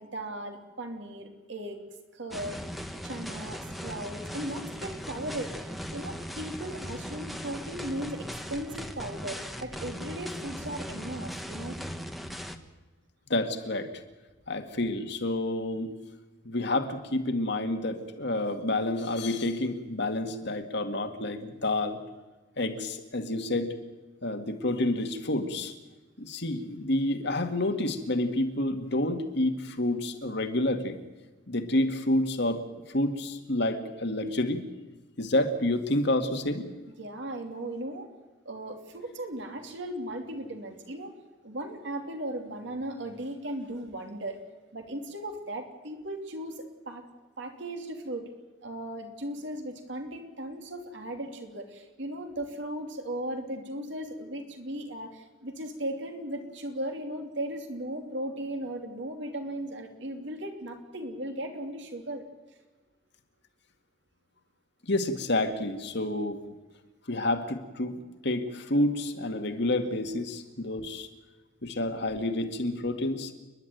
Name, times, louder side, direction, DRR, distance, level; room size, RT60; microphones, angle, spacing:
voice 1, 0.0-1.8 2.1-2.6 3.0-11.8 37.0-38.1 38.4-41.1 41.4-44.4 44.7-47.0 47.4-48.2 48.6-62.3, right 1 dB, 65° right, 4 dB, 3.0 m, -37 dB
sound 1, 2.3-12.6, equal, ahead, 1.2 m, -39 dB
voice 2, 13.3-14.0 14.5-15.9 16.4-22.0 22.6-23.7 24.2-25.7 26.2-31.0 31.5-34.6 35.2-36.7 64.9-66.4 67.1-71.1 71.6-73.3, left 1 dB, 60° left, 7 dB, 2.0 m, -29 dB
29.5 x 11.0 x 9.3 m, 1.2 s
head